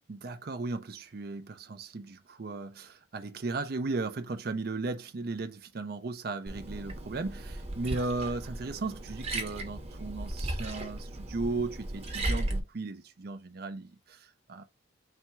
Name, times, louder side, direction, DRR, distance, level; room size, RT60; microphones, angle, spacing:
voice 1, 0.1-14.6, right 3 dB, 50° right, 0.5 m, -36 dB
Liquid, 6.5-12.6, right 1 dB, 30° right, 1.0 m, -36 dB
4.2 x 2.3 x 4.2 m
head